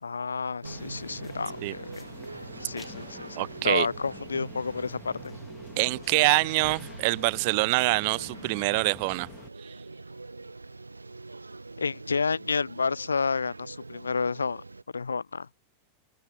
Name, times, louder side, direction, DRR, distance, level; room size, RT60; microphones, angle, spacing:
voice 1, 0.0-2.0 2.6-5.2 11.8-14.6 14.9-15.5, left 5 dB, 75° left, 0.5 m, -30 dB
sound 1, 0.6-9.5, left 4 dB, 10° left, 2.0 m, -48 dB
sound 2, 0.6-14.8, right 3 dB, 80° right, 1.2 m, -43 dB
voice 2, 3.4-3.9 5.8-9.3 9.6-9.7, right 27 dB, 50° right, 0.4 m, -25 dB
open air
figure-of-eight pair, 90°, 0 cm